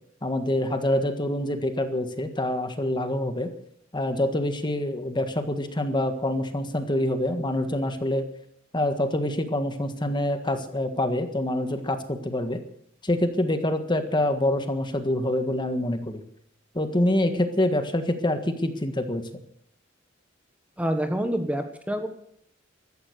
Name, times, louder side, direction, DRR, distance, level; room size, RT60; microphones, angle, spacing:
voice 1, 0.2-3.5 3.9-8.3 8.7-12.6 13.0-16.2 16.7-19.2, left 1 dB, 25° left, 8 dB, 1.6 m, -26 dB
voice 2, 20.8-22.1, equal, 5° right, 6 dB, 1.4 m, -27 dB
14.5 x 14.0 x 6.5 m, 0.67 s
head